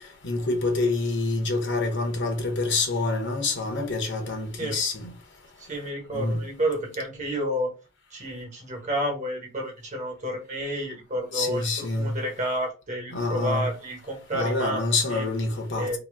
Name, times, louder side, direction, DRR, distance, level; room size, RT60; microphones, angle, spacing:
voice 1, 0.2-5.1 6.1-6.4 11.3-12.1 13.1-13.7 14.3-16.0, left 3 dB, 55° left, 0.9 m, -27 dB
voice 2, 5.6-7.7 8.1-14.8 15.1-15.3 15.7-16.0, equal, 35° right, 1.3 m, -30 dB
2.9 x 2.7 x 3.9 m
head